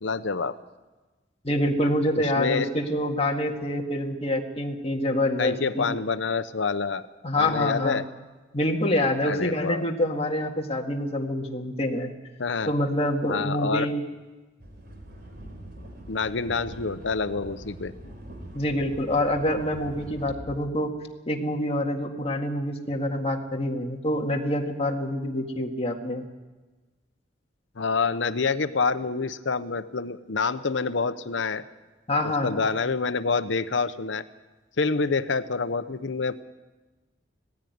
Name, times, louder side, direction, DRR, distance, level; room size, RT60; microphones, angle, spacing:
voice 1, 0.0-0.5 2.1-2.7 5.4-7.1 7.4-8.0 9.2-9.9 12.4-12.7 13.3-13.9 16.1-17.9 27.8-31.6 32.4-34.2 34.8-36.4, left 4 dB, 75° left, 13 dB, 0.8 m, -27 dB
voice 2, 1.4-6.0 7.2-8.0 8.5-12.1 12.7-14.0 18.5-20.9 21.3-26.2 32.1-32.5, left 1 dB, 35° left, 2 dB, 2.0 m, -26 dB
sound 1, 14.6-20.4, right 1 dB, 60° right, 4.0 m, -43 dB
18.0 x 15.5 x 9.4 m, 1.2 s
head